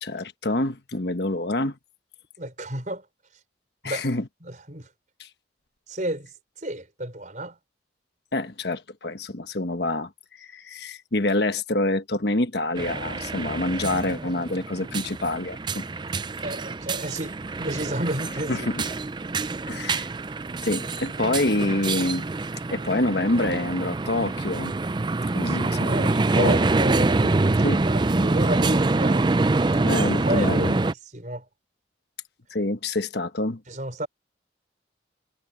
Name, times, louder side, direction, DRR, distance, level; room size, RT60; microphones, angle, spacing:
voice 1, 0.0-1.8 3.8-4.3 5.2-5.3 8.3-10.1 10.4-15.9 18.5-18.9 19.6-20.1 20.6-22.2 22.7-24.7 25.3-26.1 26.4-27.3 27.6-27.8 29.8-30.7 32.5-33.6, left 2 dB, 60° left, 1.3 m, -27 dB
voice 2, 2.4-3.0 3.8-4.1 4.4-4.9 5.9-6.3 6.6-7.6 16.4-18.5 25.5-25.6 25.8-27.2 27.7-29.3 30.2-31.4 33.7-34.1, right 1 dB, 40° right, 5.6 m, -31 dB
sound 1, 12.8-30.9, right 3 dB, 25° right, 0.4 m, -25 dB
head